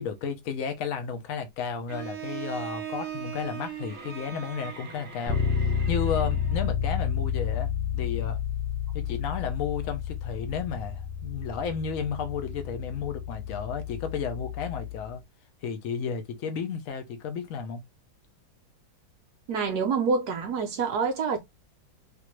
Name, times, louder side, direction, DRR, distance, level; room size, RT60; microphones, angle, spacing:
voice 1, 0.0-8.4 8.9-15.2 15.6-17.8, left 6 dB, 65° left, 0.8 m, -33 dB
Bowed string instrument, 1.9-6.7, right 9 dB, 85° right, 0.5 m, -39 dB
Bass guitar, 5.3-15.1, left 7 dB, 80° left, 1.5 m, -30 dB
voice 2, 19.5-21.4, right 5 dB, 70° right, 1.0 m, -26 dB
3.5 x 2.6 x 3.0 m
omnidirectional pair, 2.2 m